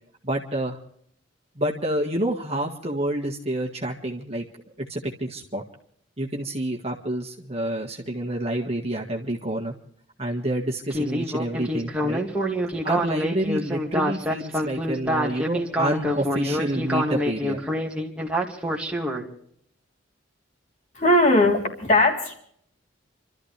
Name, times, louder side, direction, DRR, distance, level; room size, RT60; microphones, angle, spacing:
voice 1, 0.2-0.8 1.5-4.4 4.9-5.6 6.2-9.7 10.2-12.2 12.8-17.6, right 1 dB, 35° right, 1 dB, 1.7 m, -28 dB
Speech synthesizer, 10.9-19.2, equal, 5° right, 2.3 m, -26 dB
voice 2, 20.9-22.3, left 1 dB, 40° left, 0 dB, 3.7 m, -19 dB
29.5 x 13.5 x 3.4 m, 0.65 s
head